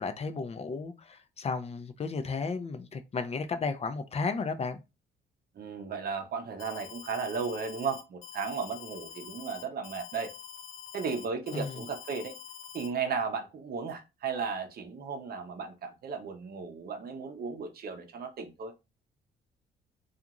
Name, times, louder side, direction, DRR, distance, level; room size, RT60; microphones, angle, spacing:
voice 1, 0.0-4.8 11.5-11.8, left 4 dB, 30° left, 0.4 m, -34 dB
voice 2, 5.6-10.3 10.9-12.3 12.7-18.7, right 5 dB, 50° right, 0.7 m, -35 dB
Alarm, 6.6-12.9, left 8 dB, 85° left, 0.5 m, -46 dB
2.5 x 2.4 x 2.9 m
cardioid pair, 90°, 20 cm